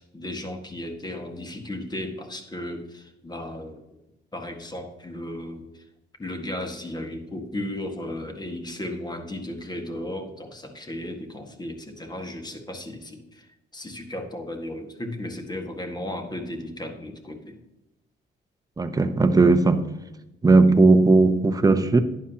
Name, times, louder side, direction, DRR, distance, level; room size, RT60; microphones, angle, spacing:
voice 1, 0.0-3.8 4.3-5.9 6.2-13.5 13.7-17.6, left 1 dB, 20° left, 1.7 m, -35 dB
voice 2, 18.8-19.9 20.4-22.0, right 3 dB, 20° right, 0.9 m, -17 dB
11.0 x 9.9 x 2.9 m
cardioid pair, 90°, 20 cm